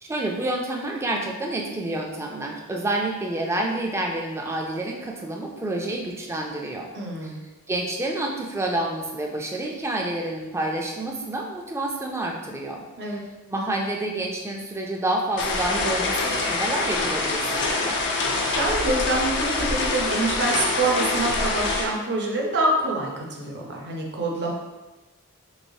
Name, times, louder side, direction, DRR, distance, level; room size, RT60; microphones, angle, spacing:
voice 1, 0.1-6.9 7.2-7.4 7.7-13.2 13.5-18.0, right 1 dB, 10° right, 0 dB, 0.3 m, -28 dB
voice 2, 6.9-7.4 13.0-13.2 18.3-24.5, right 2 dB, 50° right, 0 dB, 0.6 m, -26 dB
sound 1, 15.4-21.9, left 3 dB, 55° left, 0.5 m, -25 dB
3.1 x 3.0 x 2.7 m, 1.1 s
head